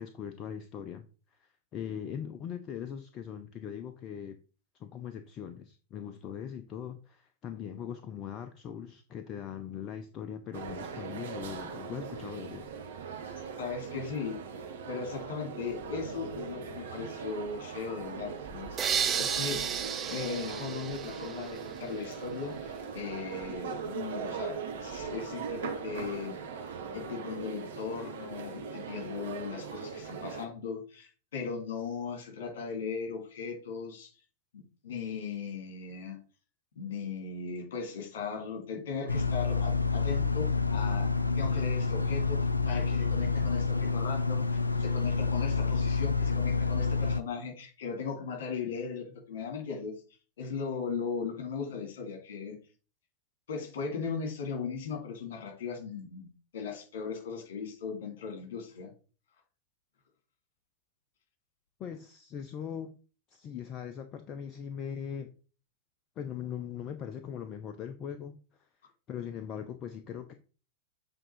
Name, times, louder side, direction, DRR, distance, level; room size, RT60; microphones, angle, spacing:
voice 1, 0.0-4.4 4.8-12.7 61.8-62.9 63.3-65.3 66.2-68.7 69.1-70.3, left 8 dB, 35° left, 8 dB, 0.6 m, -40 dB
sound 1, 10.5-30.4, right 6 dB, 60° right, 1.1 m, -40 dB
voice 2, 13.6-14.4 14.9-19.7 20.1-34.1 34.5-36.2 36.8-41.1 41.4-49.9 50.4-52.6 53.5-58.9, left 5 dB, 60° left, 3 dB, 2.3 m, -38 dB
sound 2, 18.8-21.8, right 7 dB, 25° right, 0.7 m, -33 dB
sound 3, 39.1-47.2, left 4 dB, 80° left, 0.4 m, -28 dB
7.6 x 3.6 x 4.2 m, 0.36 s
figure-of-eight pair, 90°, 0 cm